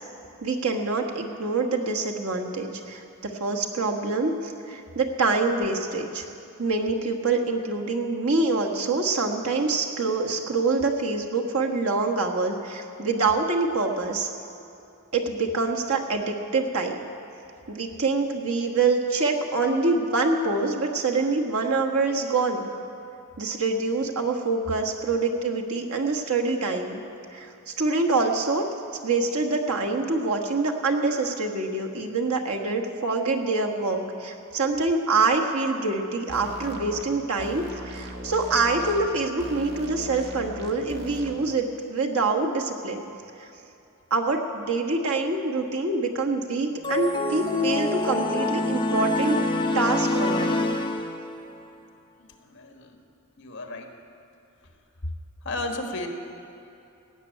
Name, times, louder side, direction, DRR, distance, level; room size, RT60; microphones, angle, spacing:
voice 1, 0.4-6.3 6.6-14.3 15.1-17.0 17.7-22.7 23.4-27.0 27.3-28.6 29.0-43.0 43.4-43.5 44.1-49.4 49.7-50.8, right 3 dB, 80° right, 2 dB, 1.4 m, -25 dB
sound 1, 36.3-37.0 37.4-39.1 39.4-41.4, equal, 50° right, 1.5 m, -39 dB
sound 2, 46.8-51.5, left 2 dB, 20° left, 0.8 m, -26 dB
voice 2, 52.2-53.0 53.4-53.9 55.4-56.1, left 2 dB, 55° left, 4 dB, 1.4 m, -34 dB
17.0 x 6.8 x 9.1 m, 2.7 s
head